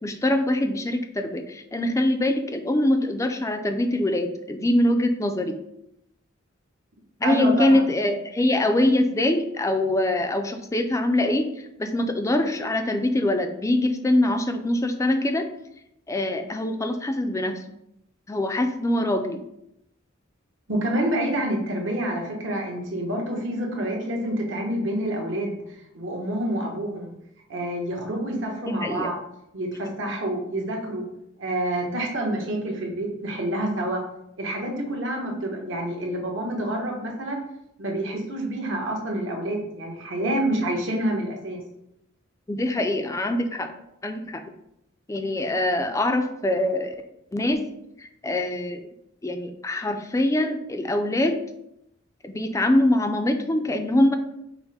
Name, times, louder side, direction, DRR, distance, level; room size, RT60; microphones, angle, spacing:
voice 1, 0.0-5.6 7.2-15.5 16.1-17.6 18.3-19.4 28.7-29.1 42.5-43.7 44.0-44.4 45.1-46.9 47.3-47.6 48.0-48.9 49.2-51.4 52.2-54.1, left 1 dB, 15° left, 6 dB, 0.3 m, -23 dB
voice 2, 7.2-7.8 20.7-25.6 25.9-27.1 27.5-29.1 29.5-31.0 31.4-34.0 34.4-37.4 37.8-41.6, right 1 dB, 65° right, 0 dB, 1.0 m, -27 dB
5.7 x 2.1 x 4.1 m, 0.81 s
head